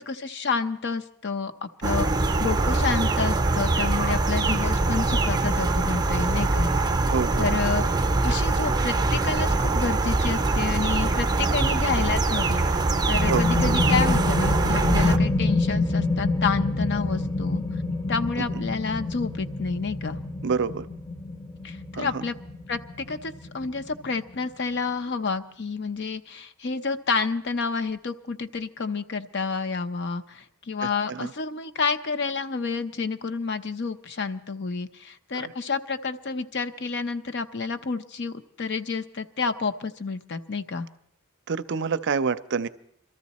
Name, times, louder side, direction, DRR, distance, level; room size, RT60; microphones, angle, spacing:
voice 1, 0.0-7.0 7.4-7.8 8.2-17.6 18.1-20.2 21.6-22.4 22.7-40.9, left 4 dB, 55° left, 8 dB, 0.7 m, -29 dB
sound 1, 1.8-15.2, right 2 dB, 20° right, 0.7 m, -23 dB
voice 2, 7.1-7.5 13.3-13.5 18.4-18.6 20.4-20.9 21.9-22.2 31.1-31.3 35.3-35.5 41.5-42.7, right 5 dB, 55° right, 14 dB, 0.5 m, -27 dB
sound 2, 12.9-24.2, left 2 dB, 20° left, 0.8 m, -27 dB
23.0 x 13.5 x 4.2 m, 0.69 s
head